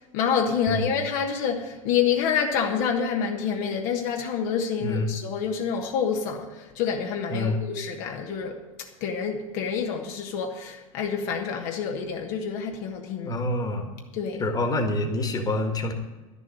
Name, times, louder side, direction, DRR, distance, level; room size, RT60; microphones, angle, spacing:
voice 1, 0.1-13.4 14.1-14.4, left 7 dB, 50° left, 1.4 m, -27 dB
voice 2, 4.8-5.1 7.3-7.6 13.2-13.9 14.4-15.9, left 2 dB, 20° left, 1.8 m, -26 dB
12.0 x 6.9 x 9.6 m
figure-of-eight pair, 75°, 17 cm